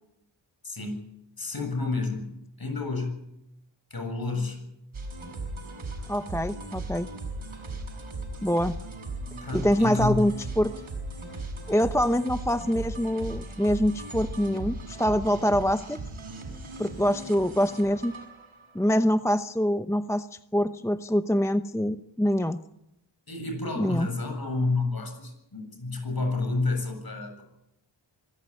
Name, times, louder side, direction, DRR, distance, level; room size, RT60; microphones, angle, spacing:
voice 1, 0.6-1.0 1.4-2.3 2.6-3.3 3.9-4.7 9.4-10.3 23.3-27.4, left 3 dB, 50° left, 4 dB, 7.9 m, -30 dB
sound 1, 4.9-18.8, right 2 dB, 80° right, 6.7 m, -38 dB
voice 2, 6.1-7.1 8.4-8.8 9.5-10.7 11.7-16.0 16.8-18.1 18.7-20.3 20.5-22.6 23.8-24.1, equal, 5° left, 10 dB, 0.8 m, -25 dB
25.0 x 15.5 x 10.0 m, 0.85 s
wide cardioid pair, 75°, 47 cm